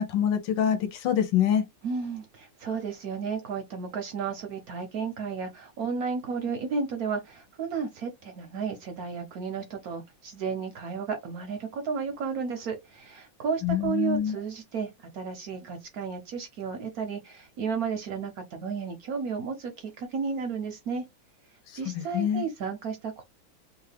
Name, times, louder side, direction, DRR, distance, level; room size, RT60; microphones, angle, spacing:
voice 1, 0.0-1.6 13.6-14.3 22.1-22.4, left 9 dB, 75° left, 1.3 m, -25 dB
voice 2, 1.8-21.0 21.7-23.2, right 5 dB, 70° right, 0.9 m, -33 dB
3.1 x 2.4 x 3.2 m
omnidirectional pair, 2.1 m